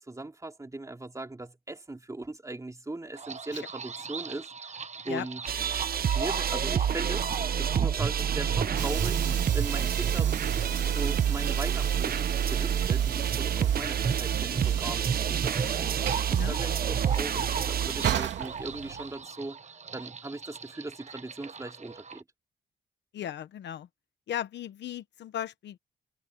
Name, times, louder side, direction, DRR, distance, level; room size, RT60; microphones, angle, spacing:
voice 1, 0.1-4.7 5.1-5.4 6.1-7.3 7.6-9.2 9.5-10.4 10.9-12.2 12.5-15.7 16.3-19.6 19.9-22.2, right 2 dB, 20° right, 3.4 m, -39 dB
sound 1, 3.2-22.2, right 5 dB, 40° right, 1.3 m, -37 dB
sound 2, 5.5-18.2, right 8 dB, 55° right, 0.9 m, -28 dB
Train / Sliding door, 7.8-19.2, right 10 dB, 90° right, 2.9 m, -38 dB
voice 2, 23.1-23.9 24.3-25.8, left 10 dB, 80° left, 1.1 m, -36 dB
cardioid pair, 80°, 18 cm